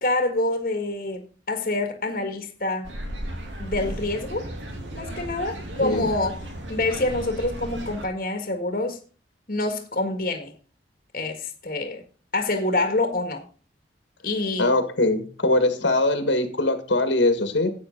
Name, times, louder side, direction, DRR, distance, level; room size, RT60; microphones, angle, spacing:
voice 1, 0.0-2.9 3.6-4.5 4.9-9.0 9.5-10.5 11.1-12.0 12.3-13.4 14.2-14.7, left 2 dB, 50° left, 1.7 m, -26 dB
sound 1, 2.8-8.1, right 1 dB, 85° right, 2.9 m, -35 dB
voice 2, 5.8-6.1 14.6-17.7, left 2 dB, 85° left, 1.7 m, -22 dB
12.5 x 8.5 x 3.8 m
head